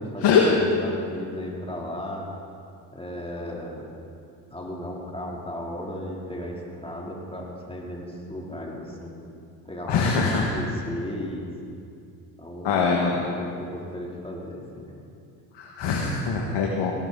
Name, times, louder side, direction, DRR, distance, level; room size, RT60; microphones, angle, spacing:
voice 1, 0.0-2.3 2.9-3.8 4.5-9.1 9.6-11.5 12.4-15.0, equal, 10° left, -2 dB, 3.2 m, -35 dB
voice 2, 9.9-10.5 12.6-13.1 15.6-16.9, left 6 dB, 60° left, -1 dB, 1.8 m, -22 dB
17.5 x 12.5 x 4.0 m, 2.4 s
supercardioid pair, 65°, 49 cm